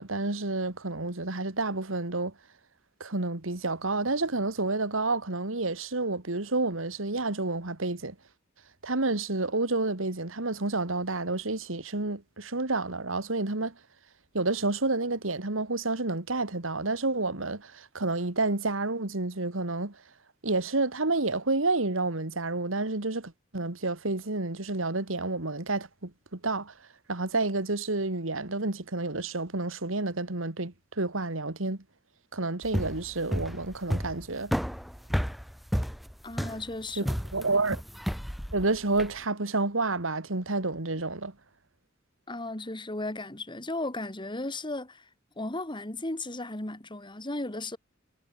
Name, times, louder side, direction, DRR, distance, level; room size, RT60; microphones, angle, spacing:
voice 1, 0.0-2.3 3.0-8.2 8.8-13.7 14.3-20.0 20.4-26.7 27.1-31.8 32.3-34.5 37.0-37.8 38.5-41.3, right 2 dB, 85° right, 2.3 m, -29 dB
sound 1, 32.6-39.2, equal, ahead, 1.9 m, -32 dB
voice 2, 36.2-37.1 42.3-45.1 45.4-47.8, left 2 dB, 25° left, 2.4 m, -35 dB
head